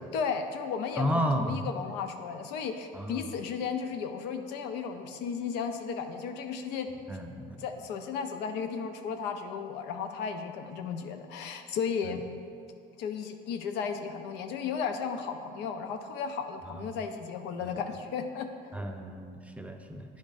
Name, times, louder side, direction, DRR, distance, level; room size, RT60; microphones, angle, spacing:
voice 1, 0.1-6.9 7.6-12.2 13.0-18.5, left 6 dB, 85° left, 6 dB, 0.5 m, -34 dB
voice 2, 1.0-1.6 2.9-3.3 7.1-7.6 12.0-12.2 16.8-17.0 17.6-17.7 18.7-20.2, equal, 10° right, 4 dB, 0.4 m, -33 dB
9.2 x 5.2 x 2.5 m, 2.3 s
cardioid pair, 110°, 17 cm